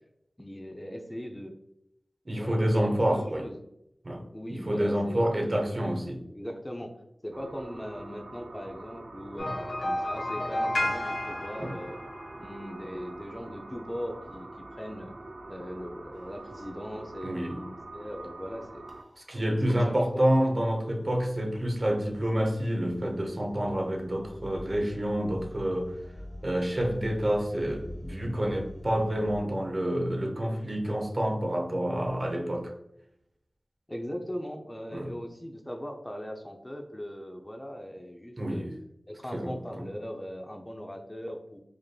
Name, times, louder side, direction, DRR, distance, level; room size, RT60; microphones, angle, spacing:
voice 1, 0.4-1.6 2.3-3.6 4.3-5.8 6.3-6.9 7.2-9.5 9.8-12.0 12.4-15.1 15.5-18.8 19.3-20.3 33.9-38.7 39.1-41.6, equal, 15° left, 3 dB, 0.4 m, -39 dB
voice 2, 2.3-3.5 4.0-6.2 11.6-11.8 17.2-17.6 19.3-25.9 26.4-32.7 34.9-35.1 38.4-38.7 39.3-39.8, equal, 40° right, 2 dB, 0.7 m, -28 dB
sound 1, 7.3-19.0, right 2 dB, 55° right, 0.3 m, -45 dB
sound 2, 9.4-12.7, left 1 dB, 75° left, 1.1 m, -32 dB
sound 3, 16.1-29.4, left 1 dB, 45° left, 1.0 m, -47 dB
4.9 x 2.9 x 2.2 m, 0.81 s
wide cardioid pair, 75°, 0 cm